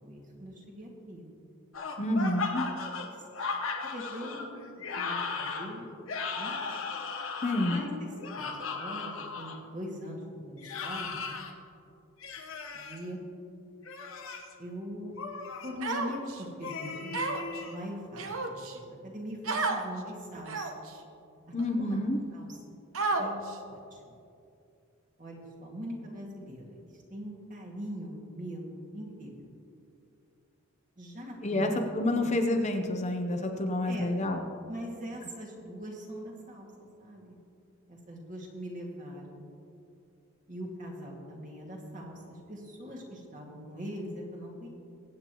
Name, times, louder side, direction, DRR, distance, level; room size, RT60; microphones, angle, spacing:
voice 1, 0.0-1.3 2.9-3.1 3.8-4.5 5.0-6.0 6.4-6.6 7.6-8.1 8.4-11.3 12.7-13.2 14.6-15.1 15.6-17.2 17.7-20.9 21.5-22.0 22.3-22.6 23.2-23.4 23.7-24.1 25.2-26.8 27.1-29.5 31.0-32.3 33.9-34.1 34.7-36.7 37.0-37.4 37.9-39.4 40.5-44.7, equal, 40° right, -2 dB, 2.0 m, -42 dB
sound 1, 1.7-9.6 10.6-11.5 12.2-13.0 13.8-14.5 15.2-15.7 16.6-17.7, left 4 dB, 70° left, 1.2 m, -36 dB
voice 2, 2.0-2.7 7.4-7.8 21.5-22.2 31.4-34.4, left 1 dB, 30° left, 4 dB, 0.8 m, -28 dB
Human voice, 15.8-16.4 17.1-17.6 18.2-18.8 19.4-19.8 20.5-20.9 21.6-21.7 22.9-23.5, right 3 dB, 70° right, 1.0 m, -31 dB
22.5 x 8.7 x 3.0 m, 2.6 s
head